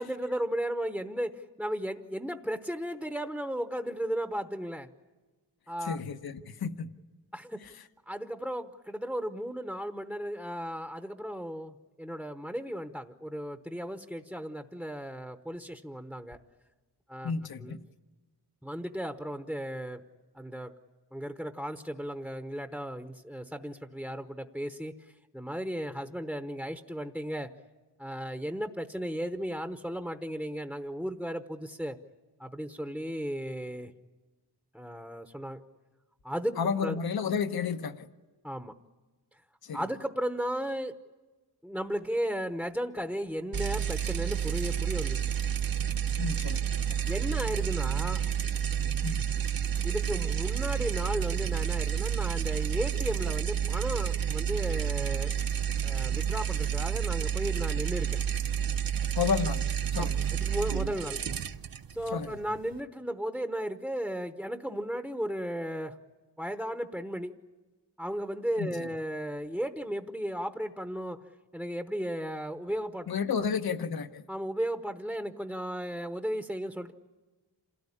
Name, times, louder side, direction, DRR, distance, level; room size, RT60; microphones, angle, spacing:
voice 1, 0.0-4.9 5.7-6.0 7.3-7.6 8.1-16.4 17.1-17.3 17.6-17.8 18.6-20.0 20.3-20.7 21.1-24.9 25.3-27.5 28.0-32.0 32.4-33.9 34.7-35.6 36.2-36.6 36.8-37.0 38.4-38.7 39.7-40.9 41.6-45.2 47.0-48.2 49.8-55.3 55.8-58.2 60.0-61.2 61.9-65.9 66.4-67.3 68.0-71.2 71.5-73.1 74.3-76.9, equal, ahead, 0.9 m, -35 dB
voice 2, 5.8-6.9 7.6-7.7 17.2-17.8 36.6-38.1 39.6-39.8 46.2-47.0 49.0-49.3 59.1-59.6 59.9-60.1 62.1-62.3 68.6-68.9 73.1-74.2, left 6 dB, 60° left, 1.1 m, -32 dB
sound 1, 43.5-62.8, right 9 dB, 55° right, 0.9 m, -30 dB
28.0 x 17.5 x 9.9 m
wide cardioid pair, 160°, 41 cm